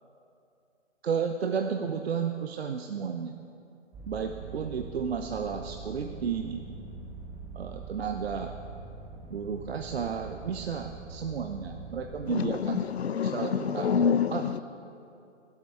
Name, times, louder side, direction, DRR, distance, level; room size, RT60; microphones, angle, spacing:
voice 1, 1.0-3.3 4.1-6.7 7.6-8.5 9.3-12.8 13.2-13.9 14.3-14.5, right 6 dB, 55° right, 5 dB, 0.7 m, -32 dB
sound 1, 3.9-12.3, right 4 dB, 10° right, 1.2 m, -43 dB
voice 2, 12.3-14.6, left 7 dB, 60° left, 15 dB, 0.6 m, -27 dB
24.5 x 8.3 x 3.5 m, 2.6 s
figure-of-eight pair, 135°, 37 cm